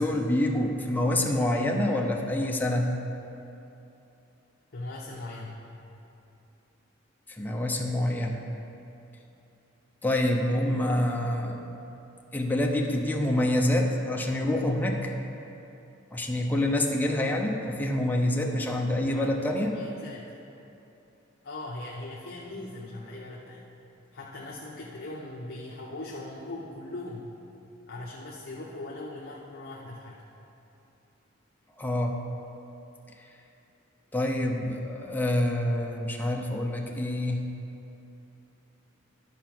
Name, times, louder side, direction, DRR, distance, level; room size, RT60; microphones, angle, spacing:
voice 1, 0.0-2.9 7.4-8.4 10.0-11.6 12.3-15.1 16.1-19.8 31.8-32.1 34.1-37.4, left 1 dB, 10° left, 1 dB, 0.6 m, -26 dB
voice 2, 4.7-5.6 18.9-20.2 21.4-23.6 24.1-27.3 27.9-30.2, left 2 dB, 50° left, -4 dB, 0.8 m, -40 dB
11.5 x 4.6 x 6.0 m, 2.9 s
head